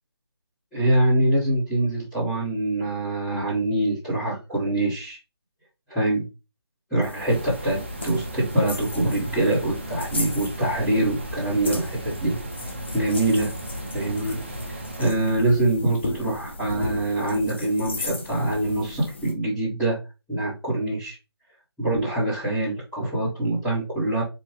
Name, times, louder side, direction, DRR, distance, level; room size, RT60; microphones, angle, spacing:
voice 1, 0.7-5.2 5.9-6.2 6.9-12.3 12.9-13.5 13.9-14.4 14.7-20.0 20.3-21.2 21.8-24.2, right 1 dB, ahead, -16 dB, 1.0 m, -24 dB
sound 1, 7.0-19.3, left 2 dB, 25° left, 0.5 m, -36 dB
sound 2, 7.3-15.1, right 1 dB, 25° right, 0.4 m, -36 dB
4.4 x 2.2 x 4.7 m, 0.27 s
hypercardioid pair, 175°, 14 cm